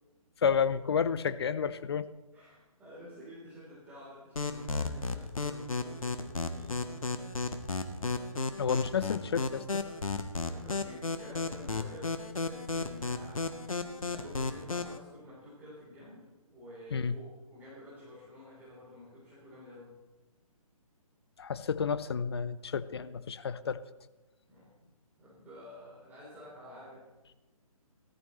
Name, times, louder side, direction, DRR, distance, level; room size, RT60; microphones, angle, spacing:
voice 1, 0.4-2.1 8.6-9.8 16.9-17.1 21.4-23.8, left 6 dB, 45° left, 14 dB, 0.6 m, -30 dB
voice 2, 2.3-7.0 10.4-12.2 12.4-13.5 14.0-19.9 24.5-24.7 25.2-27.1, left 1 dB, 10° right, -9 dB, 3.9 m, -50 dB
sound 1, 4.4-15.0, left 3 dB, 70° left, 1.2 m, -34 dB
17.0 x 13.5 x 3.3 m, 1.1 s
figure-of-eight pair, 135°, 19 cm